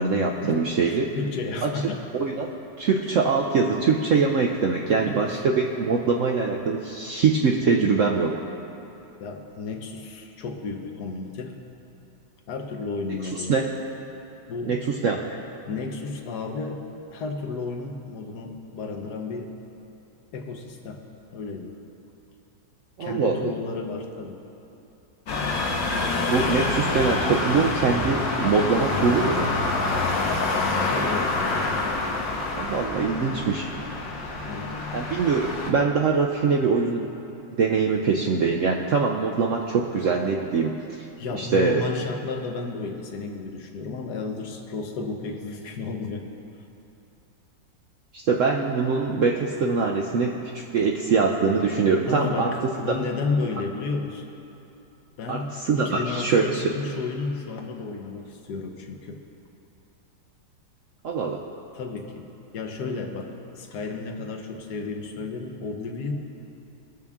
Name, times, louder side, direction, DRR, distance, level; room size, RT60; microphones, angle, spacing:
voice 1, 0.0-1.1 1.6-1.7 2.1-2.5 2.8-8.3 13.5-13.6 14.7-15.2 23.0-23.4 26.2-29.5 32.5-33.7 34.9-37.1 37.6-41.0 41.3-41.8 48.1-52.5 55.3-56.7 61.0-61.4, right 5 dB, 70° right, 1 dB, 0.7 m, -23 dB
voice 2, 0.8-2.0 5.1-5.5 9.2-11.6 12.5-13.6 14.5-14.8 15.7-16.8 17.1-19.5 20.3-21.0 21.3-21.8 23.0-24.4 30.9-31.4 33.2-33.5 34.4-34.8 41.2-46.3 52.1-54.2 55.2-59.2 61.7-62.2 62.5-66.1, left 4 dB, 65° left, 4 dB, 1.4 m, -32 dB
sound 1, 25.3-35.7, left 3 dB, 80° left, 1.8 m, -26 dB
20.5 x 7.0 x 3.6 m, 2.9 s
omnidirectional pair, 2.0 m